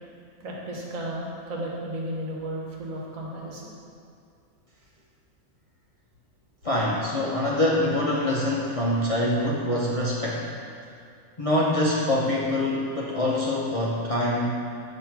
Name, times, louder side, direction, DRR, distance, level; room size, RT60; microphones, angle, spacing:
voice 1, 0.4-3.7, right 1 dB, 75° right, -2 dB, 1.4 m, -34 dB
voice 2, 6.6-10.5 11.4-14.7, left 1 dB, 45° left, -6 dB, 0.4 m, -25 dB
7.1 x 3.0 x 5.8 m, 2.4 s
omnidirectional pair, 1.4 m